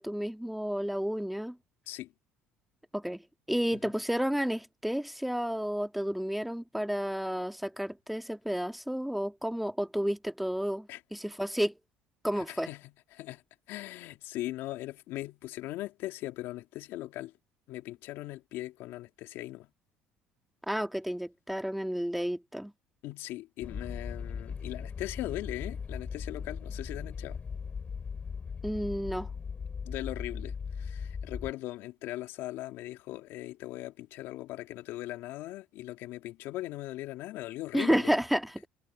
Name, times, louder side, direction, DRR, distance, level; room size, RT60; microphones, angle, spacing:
voice 1, 0.0-1.6 2.9-3.2 3.5-11.7 12.2-12.7 20.7-22.7 28.6-29.3 37.7-38.5, equal, ahead, 1.7 m, -31 dB
voice 2, 12.3-13.4 13.7-17.3 17.7-19.7 23.0-27.4 29.8-38.2, left 16 dB, 70° left, 2.6 m, -39 dB
sound 1, 23.6-31.5, left 6 dB, 35° left, 7.6 m, -38 dB
supercardioid pair, 80°, 4 cm